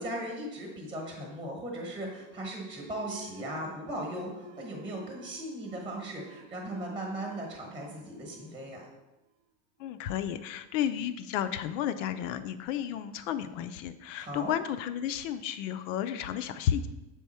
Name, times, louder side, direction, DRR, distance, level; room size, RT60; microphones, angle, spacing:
voice 1, 0.0-8.8 14.2-14.5, right 1 dB, 15° right, 0 dB, 1.0 m, -38 dB
sound 1, 2.3-9.5, right 6 dB, 40° right, 0.5 m, -53 dB
voice 2, 9.8-16.9, left 10 dB, 65° left, 10 dB, 0.5 m, -32 dB
7.1 x 3.5 x 4.3 m, 1.0 s
supercardioid pair, 150°, 43 cm